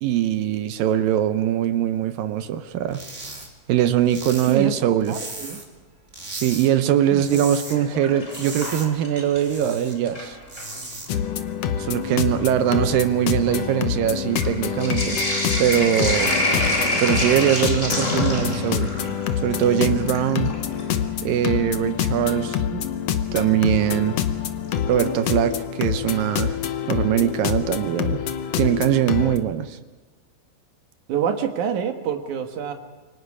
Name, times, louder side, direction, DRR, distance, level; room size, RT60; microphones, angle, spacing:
voice 1, 0.0-3.0 3.7-5.2 6.3-10.4 11.8-15.2 15.6-16.3 17.0-18.9 19.4-20.5 21.2-22.9 23.3-24.2 24.9-26.6 26.9-28.2 28.6-29.8, right 10 dB, 75° right, 11 dB, 2.3 m, -22 dB
sound 1, 2.9-3.5 3.8-5.8 6.1-6.7 7.0-7.8 8.1-9.9 10.3-11.1, right 2 dB, 20° right, 2.1 m, -36 dB
voice 2, 5.1-5.6 7.1-7.4 31.1-32.7, right 8 dB, 60° right, 5 dB, 2.7 m, -26 dB
Sink (filling or washing), 7.6-9.6 9.9-10.7 11.5-11.6 11.9-21.0 22.8-22.9 24.7-25.2 25.5-25.6 25.8-25.9, left 1 dB, 20° left, 4.3 m, -27 dB
sound 2, 11.1-29.4, left 8 dB, 85° left, 1.4 m, -26 dB
28.0 x 24.5 x 5.0 m, 1.3 s
omnidirectional pair, 4.5 m